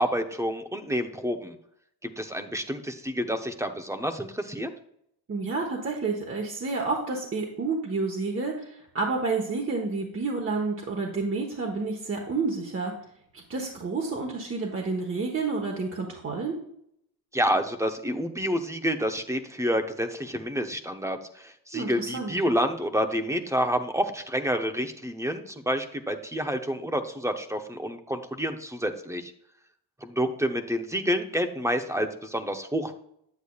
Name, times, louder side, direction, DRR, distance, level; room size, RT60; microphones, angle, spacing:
voice 1, 0.0-1.6 2.0-4.7 17.3-29.3 30.0-32.9, equal, 5° right, 7 dB, 0.7 m, -28 dB
voice 2, 5.3-12.9 13.5-16.6 21.7-22.3, right 3 dB, 30° right, 0 dB, 1.2 m, -29 dB
8.4 x 8.0 x 2.4 m, 0.72 s
cardioid pair, 90°, 41 cm